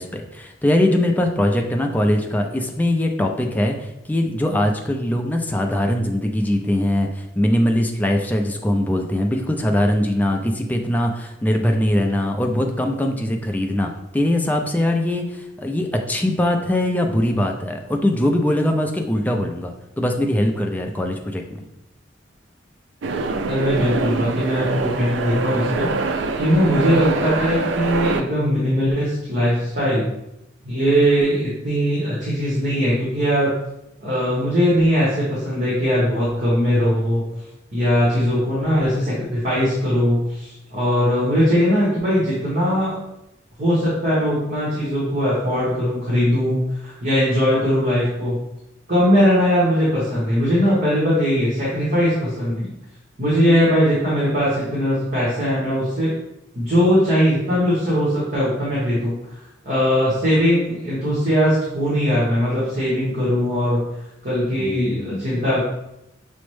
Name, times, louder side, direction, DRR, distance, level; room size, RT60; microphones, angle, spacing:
voice 1, 0.0-21.6 64.6-65.2, left 1 dB, 10° left, 2 dB, 0.4 m, -21 dB
sound 1, 23.0-28.2, right 4 dB, 70° right, 0.4 m, -24 dB
voice 2, 23.4-26.1 26.4-30.1 30.6-33.5 34.0-37.2 37.7-43.0 43.6-48.4 48.9-52.7 53.2-56.2 56.5-63.9 64.2-65.6, equal, 45° right, -9 dB, 1.2 m, -20 dB
6.0 x 2.1 x 3.1 m, 0.87 s
head